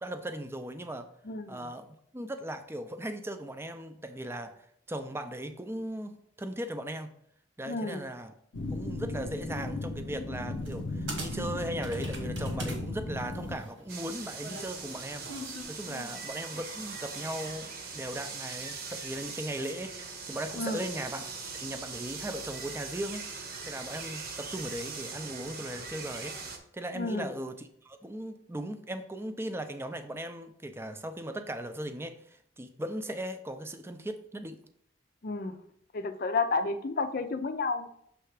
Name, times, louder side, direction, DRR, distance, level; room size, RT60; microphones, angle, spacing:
voice 1, 0.0-1.1 1.5-7.1 7.6-8.3 8.7-23.3 23.7-26.3 26.7-34.6, right 1 dB, 15° right, 8 dB, 0.5 m, -38 dB
voice 2, 1.3-1.7 7.7-8.0 15.9-16.1 20.6-20.9 26.9-27.3 35.2-35.6 35.9-37.9, left 3 dB, 55° left, 9 dB, 0.5 m, -31 dB
sound 1, 8.5-13.6, left 2 dB, 90° left, 0.7 m, -36 dB
sound 2, 10.7-10.8 11.1-12.8 13.1-15.6, right 2 dB, 90° right, 1.6 m, -41 dB
sound 3, 13.9-26.6, right 4 dB, 60° right, 0.9 m, -41 dB
6.6 x 3.4 x 4.8 m, 0.71 s
head